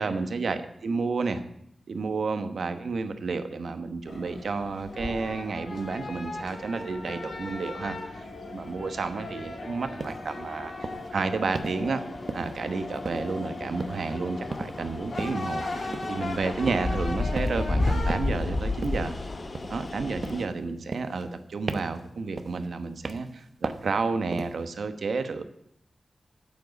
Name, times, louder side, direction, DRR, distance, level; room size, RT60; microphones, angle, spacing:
voice 1, 0.0-1.4 1.9-8.1 8.5-12.0 12.3-15.6 16.1-19.1 19.7-25.4, right 4 dB, 75° right, 9 dB, 1.1 m, -31 dB
sound 1, 4.1-18.1, left 2 dB, 70° left, 2.6 m, -39 dB
sound 2, 4.1-20.5, left 2 dB, 40° left, 0.9 m, -35 dB
sound 3, 10.0-10.2 10.8-11.1 11.5-11.8 12.3-12.7 13.1-13.5 13.8-14.1 14.5-14.8 15.2-15.5 15.9-16.2 16.7-17.0 17.4-17.7 18.1-18.4 18.8-19.1 19.5-19.9 20.2-20.5 20.9-21.4 21.7-22.0 22.4-22.7 23.0-23.4 23.6-23.9 24.3-24.6, right 3 dB, 50° right, 0.8 m, -36 dB
9.2 x 7.6 x 8.2 m, 0.78 s
wide cardioid pair, 120°, 0 cm